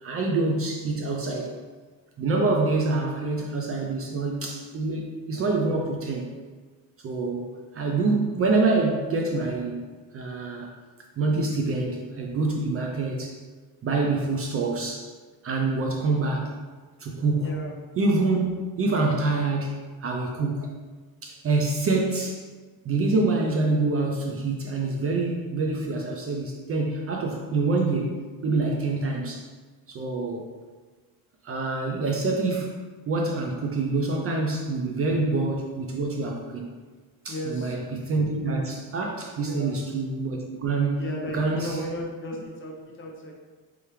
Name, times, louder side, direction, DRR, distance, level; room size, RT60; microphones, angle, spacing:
voice 1, 0.0-1.5 2.2-6.3 7.0-9.9 10.1-10.7 11.2-13.4 13.8-15.1 15.4-16.5 17.0-17.6 18.0-20.7 21.2-22.5 22.9-29.5 29.9-30.5 31.4-32.7 33.1-36.7 37.2-41.1 41.3-41.8, right 3 dB, 35° right, 1 dB, 0.4 m, -26 dB
voice 2, 17.4-17.7 37.3-37.7 39.4-39.8 41.0-43.3, left 1 dB, 30° left, -1 dB, 0.7 m, -35 dB
3.4 x 3.3 x 3.0 m, 1.4 s
cardioid pair, 120°, 40 cm